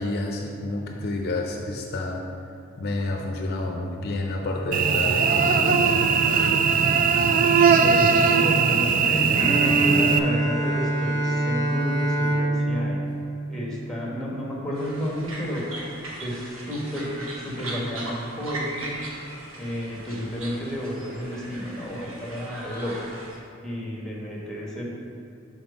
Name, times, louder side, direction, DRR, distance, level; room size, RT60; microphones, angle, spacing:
voice 1, 0.0-2.3 2.8-6.0, left 2 dB, 50° left, 1 dB, 0.6 m, -29 dB
Cricket / Buzz, 4.7-10.2, right 6 dB, 45° right, 0.3 m, -20 dB
voice 2, 7.7-13.0 13.5-15.7 16.2-19.0 19.6-23.1 23.6-24.8, equal, ahead, -4 dB, 1.2 m, -31 dB
Bowed string instrument, 9.3-14.2, right 1 dB, 20° right, 1.0 m, -25 dB
sound 1, 14.7-23.4, right 1 dB, 80° right, 1.2 m, -38 dB
6.1 x 4.1 x 5.3 m, 2.5 s
head